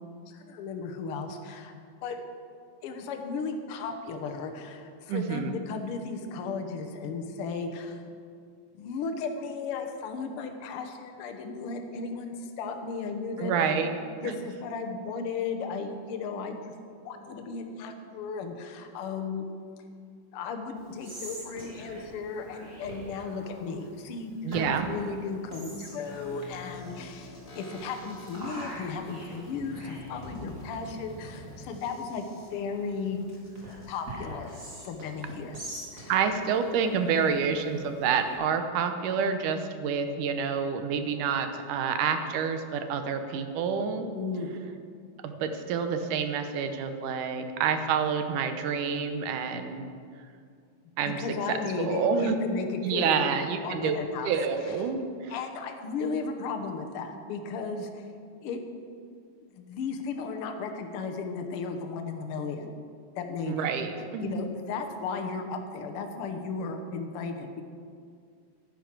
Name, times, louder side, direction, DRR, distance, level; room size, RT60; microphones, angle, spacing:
voice 1, 0.3-1.7 2.0-2.2 2.8-8.0 8.7-13.5 14.2-16.7 17.0-19.5 20.3-33.2 33.9-35.6 35.9-36.3 44.1-44.7 51.0-53.2 53.6-54.3 54.6-54.7 55.3-58.0 58.4-58.6 59.5-62.8 63.2-63.7 64.2-67.6, left 4 dB, 65° left, 5 dB, 1.4 m, -35 dB
voice 2, 5.1-5.5 13.4-13.9 14.2-14.4 24.4-24.9 36.1-44.1 45.2-49.9 51.0-51.2 51.5-52.4 52.8-54.0 54.2-55.3 63.5-64.5, right 6 dB, 80° right, 8 dB, 2.3 m, -28 dB
Whispering, 20.8-38.3, right 1 dB, 25° right, 2.7 m, -45 dB
sound 1, 26.0-34.0, left 2 dB, 30° left, 2.3 m, -47 dB
10.5 x 10.0 x 6.0 m, 2.3 s
omnidirectional pair, 3.7 m